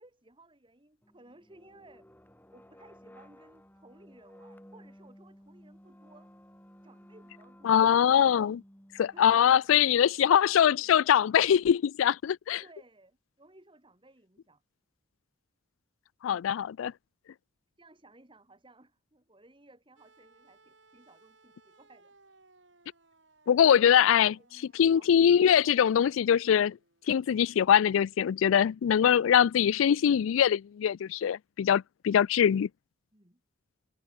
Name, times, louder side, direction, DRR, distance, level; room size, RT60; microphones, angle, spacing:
voice 1, 0.0-2.1 2.5-6.3 6.8-7.9 9.1-11.1 12.6-14.6 17.8-22.1 24.1-25.1 33.1-33.4, right 2 dB, 25° right, 3.4 m, -58 dB
sound 1, 1.0-9.8, equal, 10° left, 5.9 m, -56 dB
voice 2, 7.6-8.6 9.0-12.6 16.2-16.9 23.5-26.8 27.1-32.7, left 9 dB, 85° left, 0.3 m, -23 dB
sound 2, 20.0-28.1 29.3-29.4, right 3 dB, 65° right, 7.4 m, -64 dB
head